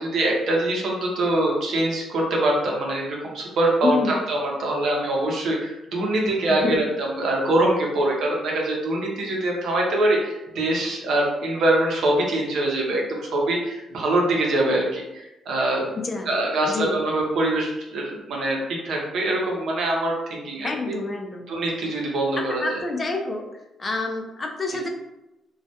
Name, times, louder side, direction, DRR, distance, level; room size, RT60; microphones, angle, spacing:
voice 1, 0.0-15.9 16.3-18.6 18.8-20.9 21.5-22.8, right 1 dB, 70° right, -1 dB, 0.7 m, -24 dB
voice 2, 3.8-4.2 6.6-6.8 16.0-16.3 16.6-17.0 20.6-21.5 22.4-23.4 23.8-24.9, left 3 dB, 35° left, 2 dB, 0.5 m, -27 dB
2.3 x 2.1 x 2.7 m, 0.94 s
cardioid pair, 90°, 0 cm